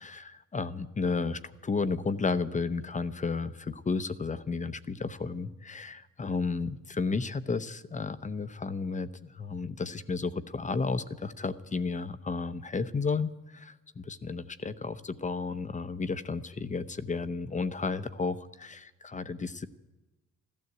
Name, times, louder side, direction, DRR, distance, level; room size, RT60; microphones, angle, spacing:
voice 1, 0.0-19.7, left 4 dB, 25° left, 12 dB, 0.7 m, -33 dB
14.5 x 12.5 x 7.9 m, 1.1 s
cardioid pair, 90°, 30 cm